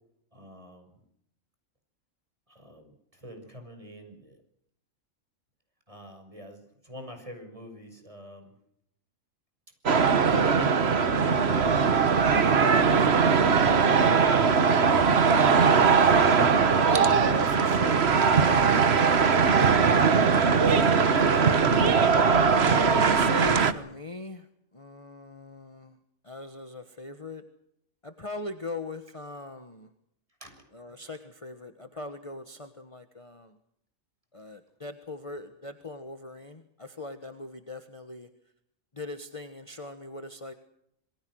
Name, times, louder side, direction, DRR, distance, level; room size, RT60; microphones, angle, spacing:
voice 1, 0.3-1.0 2.5-4.4 5.9-8.5 10.3-11.9 12.7-13.4 13.8-14.2 30.4-30.6, equal, 25° right, 6 dB, 6.4 m, -42 dB
sound 1, 9.9-23.7, right 5 dB, 50° right, 1.5 m, -21 dB
voice 2, 16.8-22.2 22.6-24.4 24.7-26.0 26.2-27.4 28.0-29.9 30.7-33.5 34.3-38.3 38.9-40.5, left 2 dB, 25° left, 7 dB, 1.5 m, -40 dB
27.5 x 23.0 x 6.4 m, 0.73 s
omnidirectional pair, 1.4 m